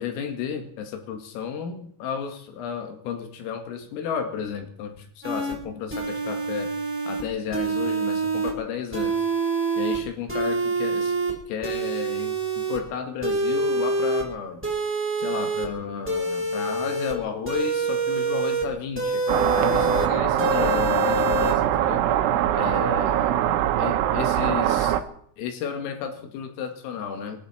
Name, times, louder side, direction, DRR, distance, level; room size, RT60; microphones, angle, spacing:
voice 1, 0.0-6.7 7.1-9.3 9.8-11.2 11.5-14.6 15.2-19.2 19.5-22.0 22.5-23.4 23.8-25.0 25.4-27.4, left 7 dB, 90° left, 5 dB, 4.6 m, -33 dB
sound 1, 5.2-5.5 5.9-7.2 7.5-8.5 8.9-10.0 10.3-11.3 11.6-12.8 13.2-14.2 14.6-15.7 16.1-17.1 17.5-18.6 19.0-20.1 20.4-21.5, right 2 dB, 5° right, 3.8 m, -26 dB
sound 2, 19.3-25.0, right 12 dB, 75° right, 3.3 m, -22 dB
27.5 x 11.5 x 4.5 m, 0.63 s
omnidirectional pair, 5.8 m